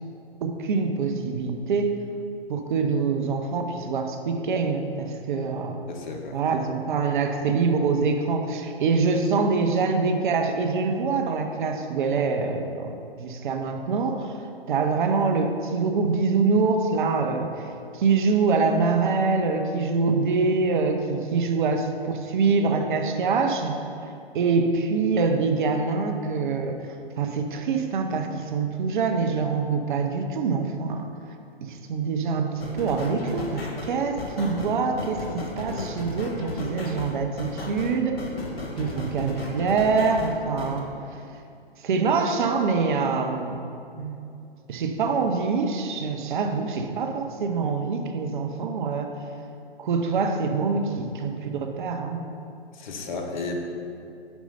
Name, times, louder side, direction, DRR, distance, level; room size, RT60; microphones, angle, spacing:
voice 1, 0.4-2.0 2.5-5.8 6.3-14.4 14.7-17.7 17.9-23.8 24.3-31.1 31.6-38.2 38.8-40.9 41.8-43.7 44.0-44.2 44.7-49.1 49.8-52.3, right 4 dB, 50° right, 5 dB, 0.6 m, -25 dB
voice 2, 5.9-6.4 52.8-53.6, left 3 dB, 50° left, 2 dB, 0.9 m, -33 dB
sound 1, 32.6-40.8, left 2 dB, 70° left, 1.2 m, -34 dB
5.2 x 4.5 x 5.5 m, 2.5 s
figure-of-eight pair, 120°, 31 cm